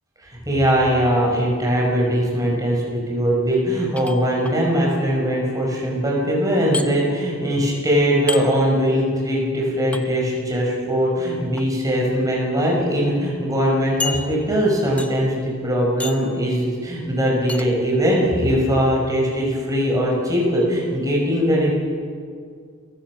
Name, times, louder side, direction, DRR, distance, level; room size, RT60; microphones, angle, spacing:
voice 1, 0.2-21.8, equal, 15° right, -3 dB, 5.5 m, -20 dB
sound 1, 4.0-4.6 6.7-6.9 8.3-8.4 9.9-10.0 11.4-11.6 12.4-12.5 12.8-12.9 14.0-14.6 15.0-15.3 16.0-16.3 17.5-17.7, left 3 dB, 5° left, 0.9 m, -30 dB
28.5 x 16.0 x 6.1 m, 2.1 s
head